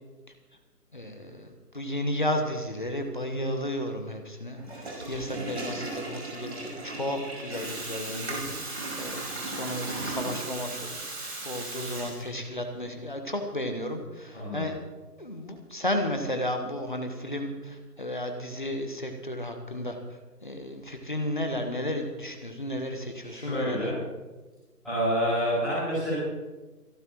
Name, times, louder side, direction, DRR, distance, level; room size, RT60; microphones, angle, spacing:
voice 1, 0.9-11.0 11.4-14.8 15.2-20.0 20.4-23.9, left 1 dB, 30° left, 5 dB, 1.3 m, -33 dB
Water tap faucet / Toilet flush, 4.6-12.6, right 2 dB, 40° right, 5.1 m, -36 dB
voice 2, 14.3-14.6 23.2-23.9 24.8-26.1, equal, ahead, -21 dB, 5.8 m, -28 dB
28.5 x 12.0 x 3.1 m, 1.2 s
figure-of-eight pair, 175°, 48 cm